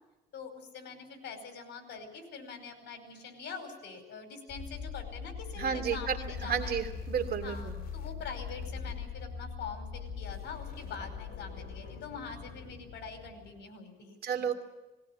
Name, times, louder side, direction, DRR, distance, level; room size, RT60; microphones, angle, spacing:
voice 1, 0.3-6.8 7.4-14.1, left 5 dB, 65° left, 6 dB, 5.2 m, -44 dB
sound 1, 4.5-13.6, left 6 dB, 50° left, 2.3 m, -41 dB
voice 2, 5.6-6.2 6.4-7.8 14.2-14.5, right 7 dB, 55° right, 5 dB, 2.8 m, -32 dB
20.0 x 17.5 x 8.9 m, 1.1 s
cardioid pair, 125°, 19 cm